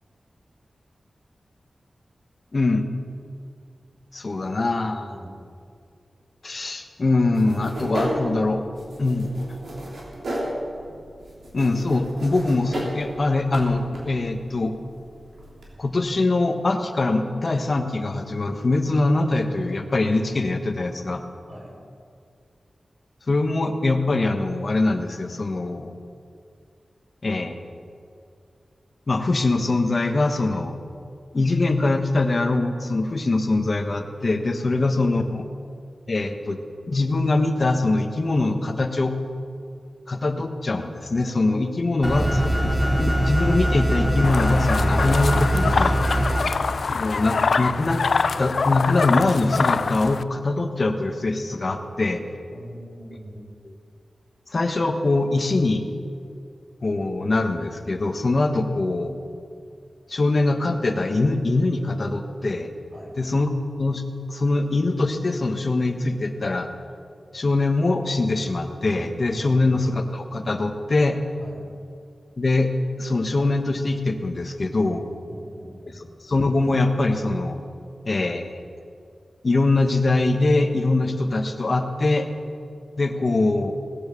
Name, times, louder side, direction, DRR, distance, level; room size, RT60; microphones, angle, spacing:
voice 1, 2.5-2.9 4.1-5.1 6.4-8.6 9.0-9.3 11.5-14.7 15.8-21.2 23.3-25.9 27.2-27.6 29.1-30.7 31.3-35.4 36.1-36.6 36.9-39.1 40.1-46.0 46.9-48.0 48.4-52.2 54.5-55.8 56.8-59.2 60.1-62.7 63.2-63.5 63.8-64.0 64.3-66.7 67.3-71.2 72.4-72.7 73.0-75.0 76.2-77.6 78.0-78.6 79.4-82.3 83.0-83.7, left 2 dB, 50° left, 6 dB, 1.2 m, -23 dB
voice 2, 4.9-5.4 21.5-21.7 34.6-35.3 46.2-46.4 52.5-53.4 62.9-63.1 69.4-69.9 71.4-71.6 75.3-76.0, equal, 45° right, -2 dB, 4.3 m, -41 dB
sound 1, 7.3-15.7, right 1 dB, 80° right, 3.1 m, -34 dB
sound 2, 42.0-46.4, equal, 15° right, 2.6 m, -22 dB
sound 3, 44.2-50.2, left 4 dB, 70° left, 0.3 m, -24 dB
18.5 x 7.9 x 7.0 m, 2.4 s
wide cardioid pair, 80°, 0 cm